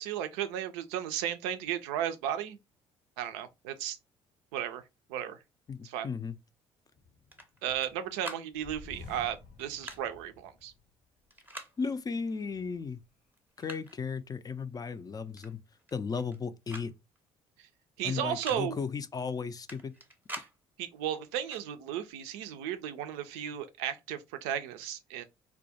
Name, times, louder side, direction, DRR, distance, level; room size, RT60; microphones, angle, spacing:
voice 1, 0.0-2.6 3.2-4.0 4.5-4.8 5.1-5.4 5.8-6.1 7.6-10.7 18.0-18.8 20.8-25.2, right 10 dB, 85° right, 0.4 m, -34 dB
voice 2, 5.7-6.4 11.8-13.0 13.6-15.6 15.9-16.9 18.0-19.9, left 5 dB, 25° left, 0.3 m, -35 dB
sound 1, 6.9-8.1 8.5-10.9 11.3-11.4 12.2-12.9, left 3 dB, 65° left, 0.7 m, -51 dB
sound 2, 7.3-7.9 8.2-8.5 9.6-10.0 11.3-11.7 12.8-12.9 13.3-14.0 15.4-15.5 15.8-16.4 16.7-16.9 17.2-17.3 18.2-18.6 19.7-20.5 21.4-21.6, right 1 dB, 15° right, 0.7 m, -44 dB
2.2 x 2.1 x 2.7 m
hypercardioid pair, 60°, 14 cm